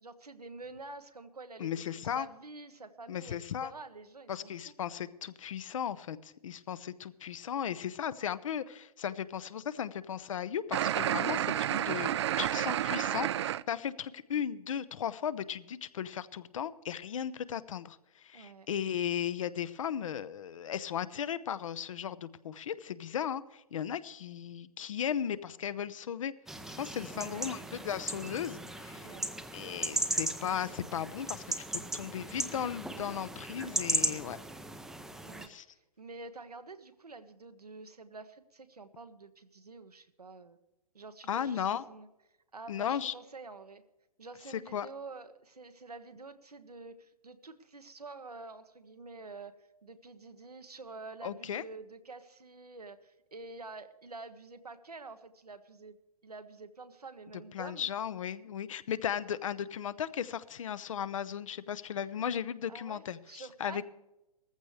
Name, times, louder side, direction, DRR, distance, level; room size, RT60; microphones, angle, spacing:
voice 1, 0.0-4.7 12.3-12.7 18.3-18.7 27.1-27.6 29.0-29.3 35.2-40.6 40.9-42.1 42.5-43.8 44.2-49.6 49.8-56.0 56.2-57.9 62.7-63.8, right 3 dB, 90° right, 9 dB, 1.3 m, -48 dB
voice 2, 1.6-2.3 3.1-3.7 4.3-26.3 26.7-29.1 29.5-31.5 31.9-34.4 35.5-35.6 41.3-41.8 42.7-43.1 44.5-44.9 51.2-51.6 57.5-63.8, left 9 dB, 55° left, 16 dB, 0.8 m, -36 dB
sound 1, 10.7-13.6, right 11 dB, 45° right, 0.4 m, -30 dB
sound 2, 26.5-35.5, right 1 dB, ahead, 0.6 m, -36 dB
18.5 x 14.5 x 3.3 m, 0.95 s
figure-of-eight pair, 125°, 19 cm